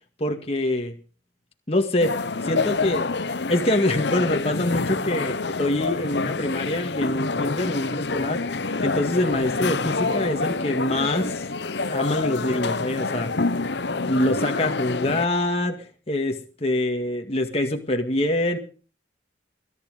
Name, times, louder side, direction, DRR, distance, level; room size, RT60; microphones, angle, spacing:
voice 1, 0.2-1.0 1.7-2.1 2.4-11.5 11.8-13.7 14.0-18.6, left 1 dB, 35° left, 3 dB, 1.9 m, -25 dB
sound 1, 2.0-15.3, left 3 dB, 65° left, 0.9 m, -27 dB
21.5 x 12.0 x 5.0 m, 0.38 s
head